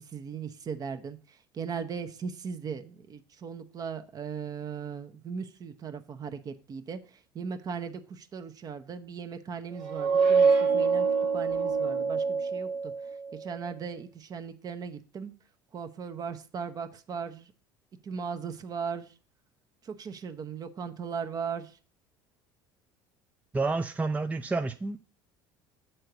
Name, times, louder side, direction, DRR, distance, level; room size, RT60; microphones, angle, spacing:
voice 1, 0.0-11.1 11.3-12.9 13.4-15.3 15.7-17.5 18.0-19.1 19.8-21.8, right 6 dB, 40° right, 8 dB, 0.9 m, -38 dB
sound 1, 9.8-13.3, right 5 dB, 70° right, 1.4 m, -25 dB
voice 2, 23.5-25.0, right 3 dB, 15° right, 6 dB, 0.5 m, -29 dB
6.6 x 4.5 x 6.7 m, 0.38 s
hypercardioid pair, 80°, 10 cm